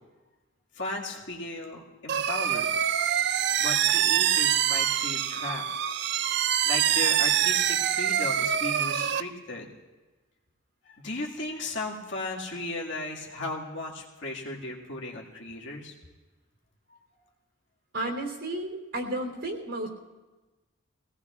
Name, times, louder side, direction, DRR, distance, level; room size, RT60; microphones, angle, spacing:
voice 1, 0.7-2.7 3.6-5.7 6.6-9.7 10.8-15.9, left 2 dB, 60° left, -3 dB, 1.9 m, -36 dB
sound 1, 2.1-9.2, right 10 dB, 55° right, 0.4 m, -25 dB
voice 2, 17.9-19.9, right 1 dB, 70° right, 1 dB, 3.2 m, -32 dB
24.5 x 17.5 x 2.4 m, 1.2 s
head